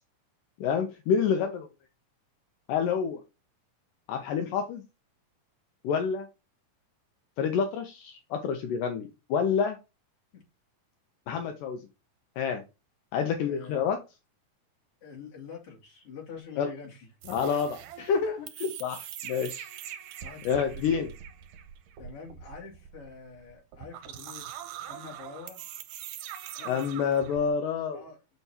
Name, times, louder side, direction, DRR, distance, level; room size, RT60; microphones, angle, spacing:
voice 1, 0.6-1.7 2.7-3.2 4.1-4.8 5.8-6.3 7.4-9.8 11.3-11.8 12.4-12.6 13.1-14.0 16.6-16.7 17.3-19.7 20.4-21.1 26.6-28.0, left 6 dB, 80° left, 5 dB, 2.4 m, -28 dB
voice 2, 13.4-13.9 15.0-17.1 20.2-21.0 22.0-24.4 24.9-25.6 26.6-27.2 27.9-28.2, left 5 dB, 45° left, -1 dB, 3.3 m, -46 dB
sound 1, 17.2-27.5, right 10 dB, 80° right, 2.3 m, -43 dB
6.7 x 6.3 x 2.8 m, 0.27 s
omnidirectional pair, 3.9 m